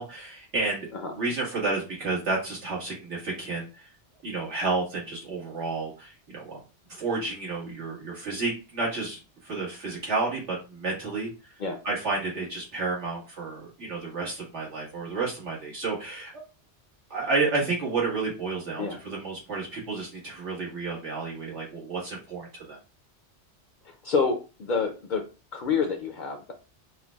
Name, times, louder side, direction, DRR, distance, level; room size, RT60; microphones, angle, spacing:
voice 1, 0.0-0.9 1.1-3.9 4.2-6.6 6.9-11.3 11.8-16.3 17.1-22.8, right 3 dB, 80° right, -4 dB, 1.9 m, -31 dB
voice 2, 23.9-25.2 25.5-26.5, left 5 dB, 60° left, 5 dB, 0.5 m, -28 dB
5.6 x 2.2 x 2.2 m, 0.32 s
omnidirectional pair, 1.2 m